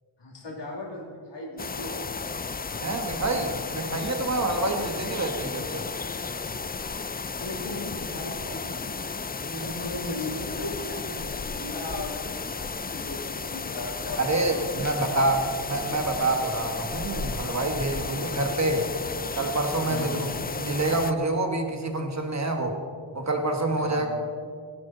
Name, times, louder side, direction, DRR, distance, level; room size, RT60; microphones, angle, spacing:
voice 1, 0.2-2.1 4.7-4.8 7.4-9.1 9.4-15.2 17.9-18.3 19.9-20.2 23.8-24.1, left 2 dB, 60° left, -3 dB, 2.9 m, -37 dB
sound 1, 1.6-21.1, left 4 dB, 20° left, 0.3 m, -34 dB
voice 2, 2.8-5.8 14.2-18.9 19.4-20.3 20.6-22.8 23.2-24.1, right 2 dB, 35° right, 4 dB, 1.7 m, -27 dB
17.5 x 11.5 x 4.2 m, 2.2 s
wide cardioid pair, 95°, 48 cm